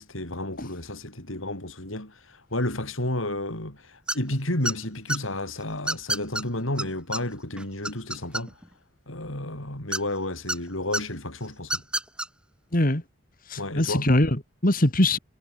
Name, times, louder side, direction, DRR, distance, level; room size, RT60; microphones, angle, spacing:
voice 1, 0.0-8.5 9.1-11.8 13.6-14.1, left 1 dB, 85° left, 7.8 m, -31 dB
sound 1, 4.1-4.3 4.6-5.2 5.9-6.4 6.8-6.9 7.1-7.2 7.6-8.7 9.9-10.6 10.9-11.0 11.6-12.3, right 1 dB, 5° right, 6.2 m, -28 dB
voice 2, 12.7-13.0 13.5-15.2, left 1 dB, 45° left, 2.6 m, -22 dB
head